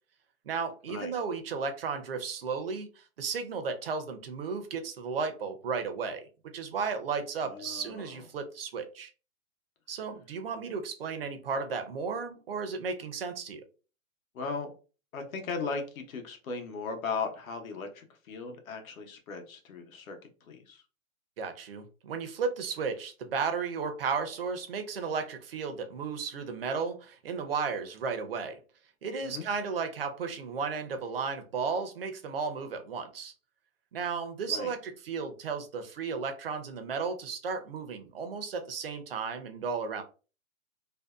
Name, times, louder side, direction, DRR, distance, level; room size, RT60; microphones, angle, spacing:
voice 1, 0.5-6.3 6.5-9.1 9.9-13.6 21.4-28.6 29.0-33.3 33.9-40.0, right 5 dB, 45° right, 0.5 m, -34 dB
voice 2, 7.4-8.2 14.3-14.7 15.1-20.8 29.2-29.5 34.5-34.7, left 4 dB, 80° left, 0.9 m, -37 dB
2.6 x 2.1 x 2.3 m
hypercardioid pair, 170°, 41 cm